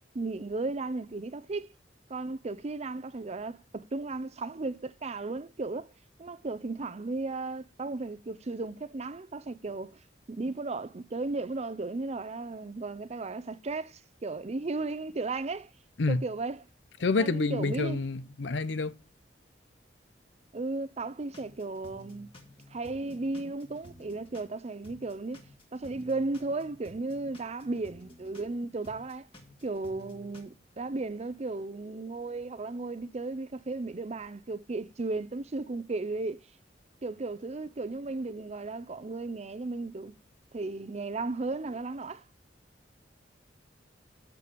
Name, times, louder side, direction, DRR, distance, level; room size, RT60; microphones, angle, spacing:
voice 1, 0.1-1.7 2.1-5.9 6.2-10.0 10.3-15.7 16.1-16.6 17.2-18.0 20.5-22.3 22.7-25.4 25.7-29.3 29.6-36.4 37.0-40.1 40.5-42.2, right 3 dB, 35° right, 0.5 m, -35 dB
voice 2, 17.0-18.9, left 3 dB, 85° left, 0.7 m, -28 dB
sound 1, 21.3-24.5 24.8-28.5 28.8-30.4, equal, 30° left, 2.4 m, -53 dB
13.5 x 4.6 x 5.1 m
head